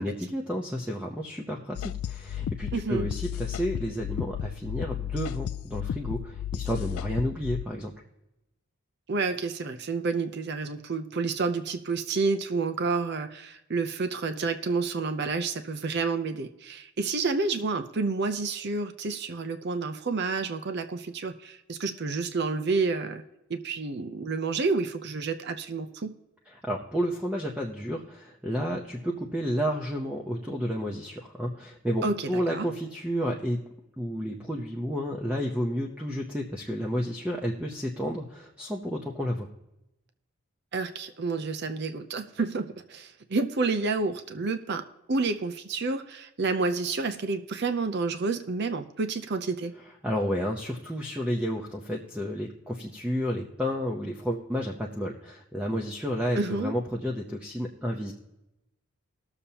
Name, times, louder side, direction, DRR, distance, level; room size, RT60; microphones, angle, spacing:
voice 1, 0.0-7.9 26.5-33.6 34.0-39.5 50.0-58.1, equal, 5° right, 0 dB, 0.7 m, -31 dB
sound 1, 1.8-7.7, left 10 dB, 80° left, 0.3 m, -34 dB
voice 2, 2.7-3.1 9.1-23.2 23.5-26.2 32.0-32.7 40.7-49.7 56.4-56.7, right 4 dB, 50° right, 8 dB, 0.6 m, -29 dB
20.5 x 7.0 x 2.9 m, 0.91 s
head